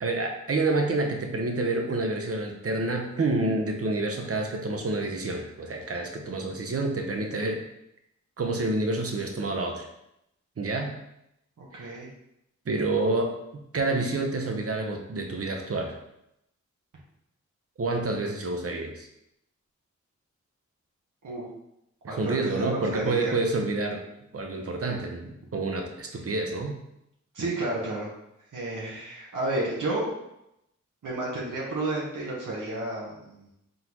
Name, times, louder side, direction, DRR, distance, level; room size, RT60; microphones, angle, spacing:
voice 1, 0.0-7.6 8.4-9.9 10.6-11.0 11.7-12.0 12.7-16.0 17.8-19.1 22.0-24.0 24.3-26.8, right 2 dB, 50° right, 3 dB, 0.8 m, -28 dB
voice 2, 11.6-12.1 21.2-21.5 22.1-23.3 27.3-28.1 28.5-30.1 31.0-33.4, right 2 dB, 80° right, -5 dB, 1.1 m, -31 dB
3.8 x 3.8 x 3.0 m, 0.83 s
cardioid pair, 50°, 31 cm